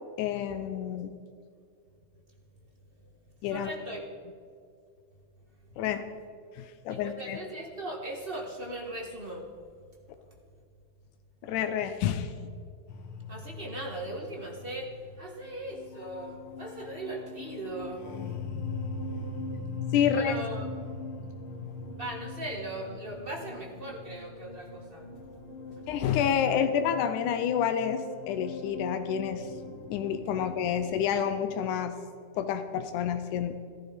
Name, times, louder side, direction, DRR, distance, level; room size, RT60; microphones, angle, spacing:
voice 1, 0.2-1.1 3.4-3.7 5.8-6.0 6.5-7.4 11.4-12.3 19.9-20.3 25.9-29.5 29.9-31.9 32.3-33.6, left 9 dB, 90° left, 8 dB, 2.2 m, -29 dB
voice 2, 3.5-4.0 6.9-9.5 13.3-18.0 20.1-20.6 21.9-25.0, right 1 dB, 40° right, 1 dB, 0.8 m, -38 dB
sound 1, 12.9-31.7, left 3 dB, 55° left, 1.7 m, -40 dB
14.5 x 14.5 x 5.1 m, 2.3 s
omnidirectional pair, 3.5 m